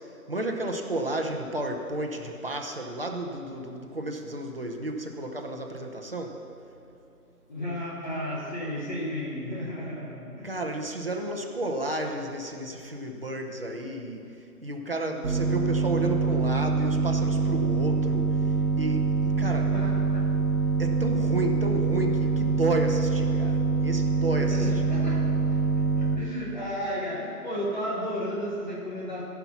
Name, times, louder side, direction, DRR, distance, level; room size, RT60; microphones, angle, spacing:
voice 1, 0.3-6.4 10.4-14.2 14.6-18.3 18.8-19.7 20.8-24.7, right 1 dB, 40° right, 2 dB, 0.9 m, -32 dB
voice 2, 7.5-10.5 19.4-20.2 24.4-29.2, equal, 30° left, -6 dB, 1.4 m, -33 dB
sound 1, 15.2-26.2, right 4 dB, 65° right, 1.3 m, -25 dB
15.0 x 5.9 x 5.9 m, 2.7 s
figure-of-eight pair, 165°, 46 cm